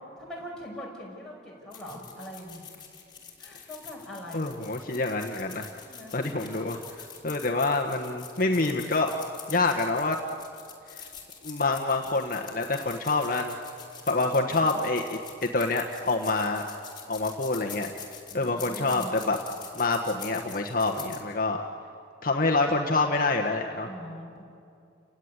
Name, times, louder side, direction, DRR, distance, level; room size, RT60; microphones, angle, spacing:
voice 1, 0.2-2.7 3.4-4.4 5.8-6.2 14.1-14.8 18.3-19.1 23.8-24.4, equal, 5° left, -4 dB, 6.0 m, -42 dB
sound 1, 1.7-21.2, left 8 dB, 25° left, 3.6 m, -45 dB
voice 2, 4.3-5.8 6.1-9.1 9.5-10.2 10.9-11.0 11.4-13.6 14.1-15.2 15.5-16.7 17.1-17.9 18.3-19.4 19.7-21.6 22.2-23.9, left 3 dB, 45° left, 2 dB, 1.3 m, -27 dB
30.0 x 17.0 x 9.7 m, 2.5 s
head